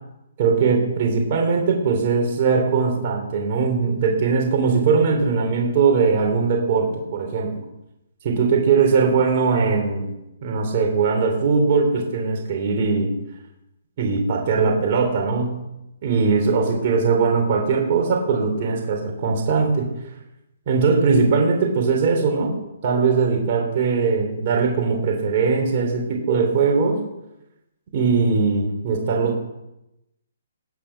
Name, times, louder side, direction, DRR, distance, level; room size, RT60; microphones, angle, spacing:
voice 1, 0.4-7.6 8.2-10.1 10.4-13.1 14.0-15.6 16.0-19.9 20.7-22.6 22.8-27.0 27.9-29.4, right 5 dB, 40° right, 0 dB, 3.6 m, -20 dB
19.0 x 9.2 x 6.0 m, 0.91 s
hypercardioid pair, 155°, 0 cm